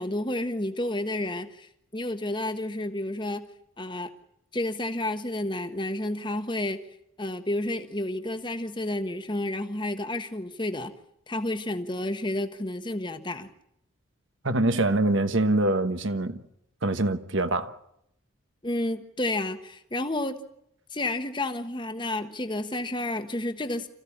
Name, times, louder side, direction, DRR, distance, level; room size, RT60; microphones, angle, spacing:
voice 1, 0.0-3.5 3.8-4.1 4.5-6.8 7.2-10.9 11.3-13.5 18.6-20.4 20.9-23.9, left 1 dB, 20° left, 1.3 m, -30 dB
voice 2, 14.4-16.4 16.8-17.7, right 2 dB, 65° right, 1.3 m, -24 dB
26.5 x 15.5 x 8.6 m
head